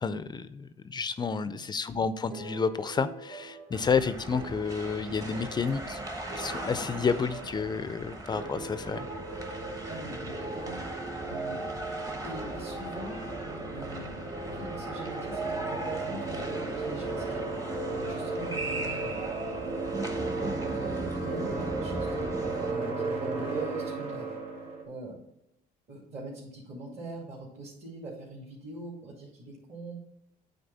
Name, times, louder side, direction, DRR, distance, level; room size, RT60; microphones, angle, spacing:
voice 1, 0.0-6.0 6.4-9.1, left 5 dB, 25° left, 13 dB, 0.4 m, -30 dB
sound 1, 2.3-19.4, right 3 dB, 65° right, 2.3 m, -43 dB
sound 2, 3.7-22.7, right 1 dB, 20° right, 1.0 m, -39 dB
sound 3, 8.3-24.8, right 3 dB, 90° right, 1.7 m, -36 dB
voice 2, 9.9-10.8 11.3-11.6 12.2-13.2 13.7-14.2 14.5-17.4 17.8-19.2 20.4-22.3 22.6-24.3 24.8-25.2 25.9-30.0, right 2 dB, 45° right, -6 dB, 2.4 m, -42 dB
8.7 x 4.1 x 4.1 m, 0.78 s
cardioid pair, 110°, 17 cm